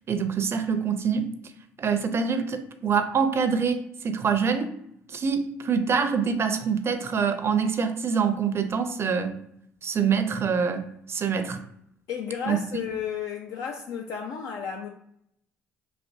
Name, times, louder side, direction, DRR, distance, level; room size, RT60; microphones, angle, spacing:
voice 1, 0.1-1.3 1.8-4.7 5.1-9.4 9.8-11.6 12.5-12.6, right 6 dB, 45° right, 0.5 m, -25 dB
voice 2, 12.1-14.9, left 7 dB, 65° left, 0.4 m, -33 dB
3.3 x 2.5 x 2.6 m
hypercardioid pair, 55°, 6 cm